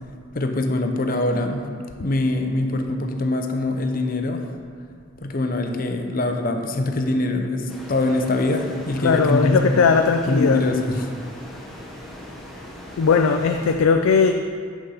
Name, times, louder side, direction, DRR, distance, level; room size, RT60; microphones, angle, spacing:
voice 1, 0.3-1.7 2.0-4.4 5.2-9.8 10.3-11.1, left 2 dB, 45° left, 4 dB, 0.7 m, -23 dB
sound 1, 7.7-13.8, left 1 dB, ahead, 1.0 m, -39 dB
voice 2, 9.0-10.7 13.0-14.3, left 5 dB, 90° left, 5 dB, 0.4 m, -18 dB
6.5 x 6.2 x 5.5 m, 2.1 s
head